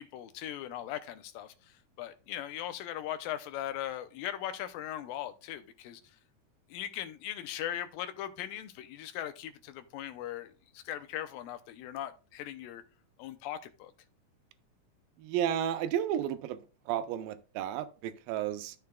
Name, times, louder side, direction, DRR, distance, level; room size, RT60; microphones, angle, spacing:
voice 1, 0.0-6.0 6.7-12.8 13.2-13.9, left 11 dB, 85° left, 2.4 m, -39 dB
voice 2, 15.2-16.6 16.9-18.8, right 10 dB, 85° right, 2.4 m, -32 dB
11.5 x 6.6 x 2.3 m
omnidirectional pair, 4.0 m